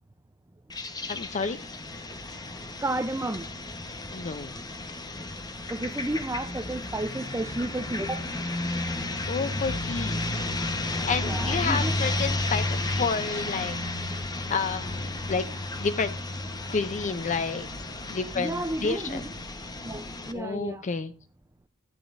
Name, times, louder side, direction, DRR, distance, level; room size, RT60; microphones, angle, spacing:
sound 1, 0.7-20.3, left 2 dB, 20° left, 1.0 m, -34 dB
voice 1, 1.1-1.7 4.1-4.5 9.3-10.2 11.1-13.8 14.5-15.5 15.8-16.1 16.7-17.7 18.1-19.2 20.3-21.1, left 5 dB, 35° left, 0.5 m, -30 dB
sound 2, 1.8-19.4, left 1 dB, 60° left, 5.2 m, -36 dB
voice 2, 2.8-3.5 5.7-8.2 11.2-11.9 18.4-19.2 19.8-20.8, right 2 dB, 15° right, 0.5 m, -32 dB
14.5 x 9.1 x 2.5 m
head